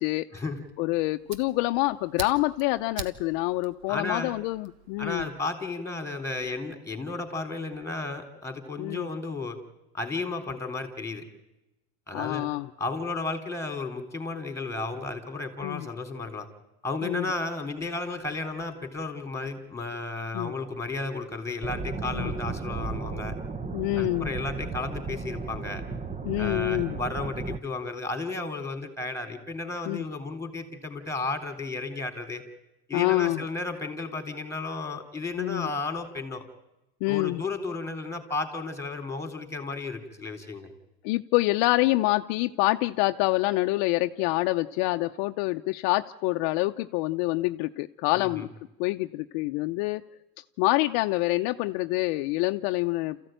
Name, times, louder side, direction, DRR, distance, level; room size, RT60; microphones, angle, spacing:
Fire, 0.7-5.3, right 6 dB, 85° right, 1.6 m, -43 dB
voice 1, 0.8-5.3 8.8-9.1 12.1-12.7 15.6-15.9 17.0-17.3 20.3-20.5 22.1-22.3 23.7-24.3 26.2-27.0 29.9-30.0 32.9-33.4 35.4-35.7 37.0-37.4 41.0-48.5 48.8-50.0 50.6-53.3, left 20 dB, 60° left, 7 dB, 0.8 m, -26 dB
voice 2, 3.9-4.3 5.0-9.6 9.9-11.2 12.1-12.5 12.8-16.5 16.8-23.3 24.0-25.8 26.4-32.4 32.9-36.4 37.1-40.7 48.1-48.5, left 3 dB, 5° left, 6 dB, 3.6 m, -33 dB
sound 1, 21.6-27.6, right 4 dB, 15° right, 0.8 m, -34 dB
28.0 x 15.0 x 9.1 m, 0.97 s
supercardioid pair, 110°, 48 cm